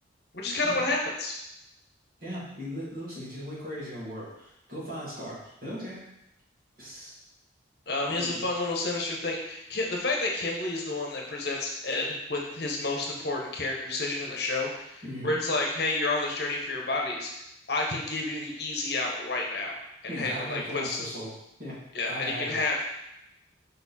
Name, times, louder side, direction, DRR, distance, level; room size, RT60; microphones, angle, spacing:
voice 1, 0.3-1.3 7.9-17.3 17.7-19.8 20.0-21.0 21.9-22.8, left 2 dB, 55° left, 0 dB, 1.0 m, -30 dB
voice 2, 2.2-6.0 6.8-7.1 8.1-8.4 15.0-15.3 20.1-21.3 21.6-21.8 22.0-22.6, equal, 45° right, -8 dB, 2.3 m, -38 dB
5.3 x 4.3 x 4.2 m, 0.83 s
head